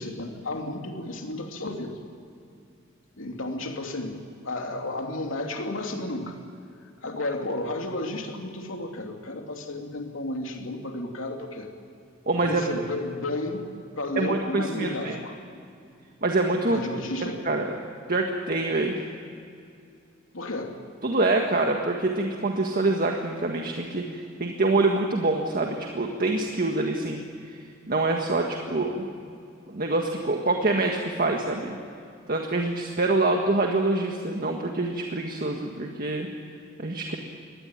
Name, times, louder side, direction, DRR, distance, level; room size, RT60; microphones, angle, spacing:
voice 1, 0.0-1.9 3.2-6.4 7.0-11.7 12.3-13.7 14.0-15.3 16.7-17.4 20.3-20.8 28.7-28.8, left 2 dB, 80° left, 3 dB, 2.9 m, -32 dB
voice 2, 12.2-12.7 14.2-15.2 16.2-16.8 17.4-17.7 18.1-19.0 21.0-27.5 27.9-29.1 29.7-31.8 32.3-36.3 36.8-37.2, right 2 dB, 45° right, 2 dB, 1.7 m, -25 dB
24.0 x 19.0 x 9.0 m, 2.5 s
head